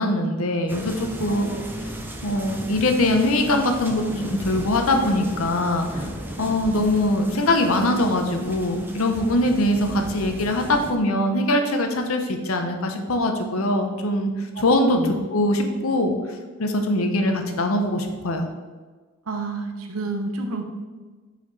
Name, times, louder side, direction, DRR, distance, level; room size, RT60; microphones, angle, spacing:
voice 1, 0.0-1.6 2.2-6.1 6.4-14.3 14.6-15.0 15.3-16.1 16.6-18.5, left 1 dB, 70° left, 5 dB, 0.8 m, -22 dB
sound 1, 0.7-10.9, equal, 10° right, 0.5 m, -35 dB
voice 2, 19.3-20.6, right 3 dB, 85° right, 5 dB, 0.8 m, -29 dB
5.9 x 4.4 x 4.0 m, 1.4 s
head